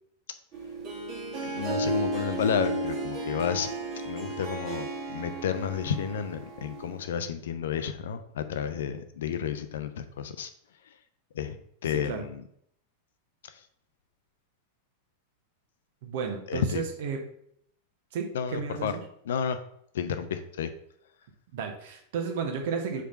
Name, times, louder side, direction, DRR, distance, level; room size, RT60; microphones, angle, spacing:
Harp, 0.5-7.0, right 2 dB, 35° right, 1.6 m, -33 dB
voice 1, 1.4-3.7 4.0-10.5 11.3-12.4 13.4-13.6 16.5-16.8 18.3-19.0 19.3-19.6 19.9-20.7, left 7 dB, 60° left, 10 dB, 0.6 m, -31 dB
voice 2, 11.9-12.3 16.0-17.2 18.1-19.0 21.5-23.0, right 6 dB, 55° right, 4 dB, 1.2 m, -33 dB
5.0 x 4.5 x 5.5 m, 0.68 s
figure-of-eight pair, 90°, 0 cm